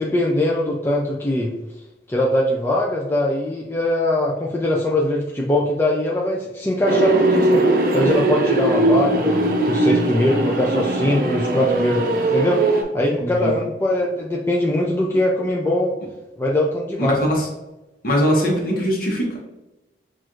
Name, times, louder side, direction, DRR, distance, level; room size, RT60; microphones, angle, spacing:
voice 1, 0.0-1.5 2.1-7.6 7.9-12.0 12.3-12.6 12.9-16.0 16.4-17.2, left 1 dB, 15° left, -3 dB, 0.4 m, -21 dB
sound 1, 6.9-12.8, right 2 dB, 50° right, 0.5 m, -19 dB
voice 2, 13.2-13.5 17.0-17.5 18.0-19.4, equal, 50° left, -1 dB, 1.0 m, -21 dB
5.9 x 2.4 x 2.5 m, 1.0 s
head